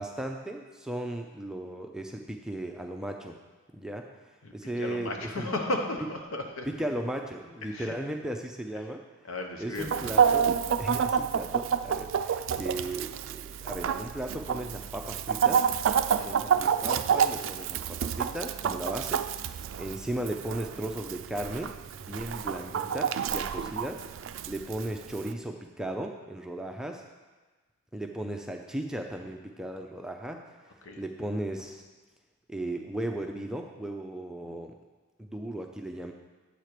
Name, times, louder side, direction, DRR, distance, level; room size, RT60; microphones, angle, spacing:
voice 1, 0.0-3.4 3.7-4.0 4.5-5.5 6.7-9.0 9.6-10.5 10.8-15.7 16.2-21.7 22.0-24.0 24.3-27.0 27.9-30.4 31.0-31.8 32.5-34.7 35.2-36.1, right 1 dB, 5° right, 3 dB, 0.4 m, -36 dB
voice 2, 4.4-6.7 7.7-7.9 9.2-10.4 16.2-16.5 23.5-23.7 30.8-31.0, left 2 dB, 80° left, 3 dB, 1.0 m, -35 dB
Chicken rooster, 9.8-25.3, right 7 dB, 65° right, 0.3 m, -29 dB
8.1 x 4.5 x 6.6 m, 1.3 s
head